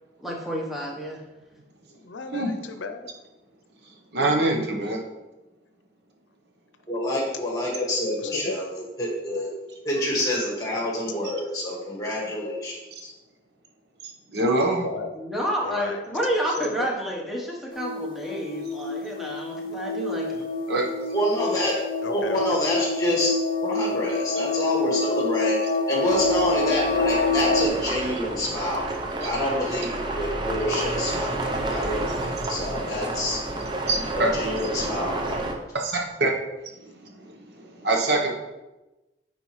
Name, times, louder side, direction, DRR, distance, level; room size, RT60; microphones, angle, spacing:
voice 1, 0.2-1.2 15.1-20.5, equal, ahead, -3 dB, 1.1 m, -30 dB
voice 2, 1.9-3.1 8.2-8.6 14.7-15.1 15.6-16.9 22.0-22.8 27.2-27.6, left 3 dB, 90° left, 7 dB, 0.6 m, -35 dB
voice 3, 4.1-5.0 14.0-14.9 20.7-20.9 29.2-29.3 33.9-34.3 35.7-36.3 36.8-38.3, right 2 dB, 65° right, 0 dB, 1.0 m, -25 dB
voice 4, 6.9-9.5 9.8-13.1 21.1-21.8 22.0-25.6 25.9-28.8 29.2-31.4 31.7-33.4 34.1-35.6, left 1 dB, 20° left, -3 dB, 1.8 m, -27 dB
sound 1, 17.7-27.7, left 3 dB, 50° left, 0.5 m, -27 dB
sound 2, 26.1-35.5, right 2 dB, 25° right, 0.6 m, -30 dB
9.6 x 4.3 x 3.2 m, 1.1 s
head